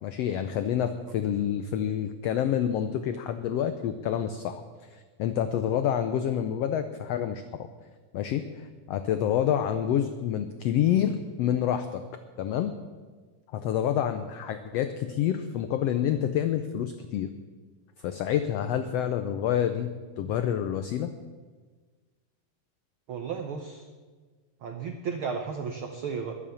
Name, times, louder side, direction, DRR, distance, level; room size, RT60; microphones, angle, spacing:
voice 1, 0.0-4.6 4.9-7.7 8.1-8.4 8.9-12.0 12.4-12.7 13.5-17.3 18.0-21.1, left 10 dB, 90° left, 9 dB, 1.4 m, -28 dB
voice 2, 23.1-23.8 24.6-26.3, right 6 dB, 80° right, 4 dB, 1.2 m, -34 dB
21.5 x 7.2 x 7.1 m, 1.4 s
omnidirectional pair, 3.6 m